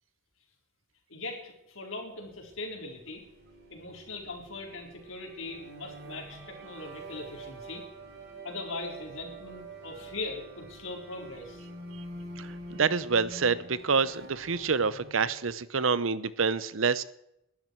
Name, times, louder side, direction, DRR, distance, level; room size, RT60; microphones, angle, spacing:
voice 1, 1.1-3.2 3.7-7.8 8.4-11.7, left 2 dB, 90° left, 1 dB, 4.2 m, -40 dB
sound 1, 2.5-15.4, right 2 dB, 55° right, 6.4 m, -46 dB
voice 2, 12.8-17.0, right 5 dB, 80° right, 16 dB, 0.8 m, -27 dB
21.5 x 12.0 x 4.6 m, 0.81 s
head